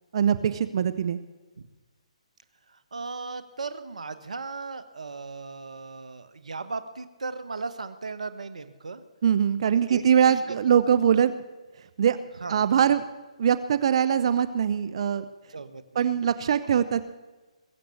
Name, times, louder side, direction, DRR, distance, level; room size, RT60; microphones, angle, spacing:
voice 1, 0.1-1.2 9.2-11.3 12.0-12.2 12.5-13.1 13.4-15.2 15.9-17.1, right 8 dB, 50° right, 13 dB, 0.9 m, -22 dB
voice 2, 2.9-9.0 9.6-10.7 12.4-12.6 15.5-16.2, right 4 dB, 80° right, 11 dB, 1.5 m, -37 dB
22.0 x 7.8 x 8.5 m, 1.2 s
hypercardioid pair, 145°, 4 cm